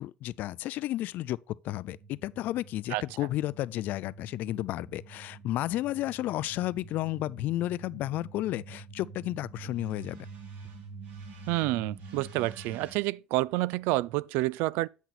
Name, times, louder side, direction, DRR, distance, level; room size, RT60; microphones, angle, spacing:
voice 1, 0.0-10.2, left 15 dB, 60° left, 0.4 m, -32 dB
sound 1, 1.8-12.9, right 4 dB, 55° right, 2.3 m, -47 dB
voice 2, 11.5-14.9, right 18 dB, 75° right, 0.4 m, -29 dB
8.1 x 6.1 x 4.1 m
supercardioid pair, 110°, 3 cm